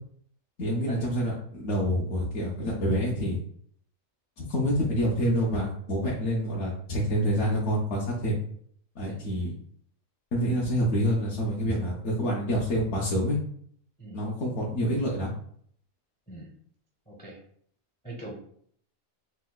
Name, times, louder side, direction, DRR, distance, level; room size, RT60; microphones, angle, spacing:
voice 1, 0.6-3.4 4.4-8.4 9.0-9.5 10.3-13.4 14.1-15.3, equal, 65° left, -4 dB, 0.8 m, -27 dB
voice 2, 17.1-17.4 18.0-18.3, right 2 dB, 10° left, -2 dB, 0.4 m, -41 dB
4.4 x 2.1 x 2.2 m, 0.63 s
omnidirectional pair, 1.5 m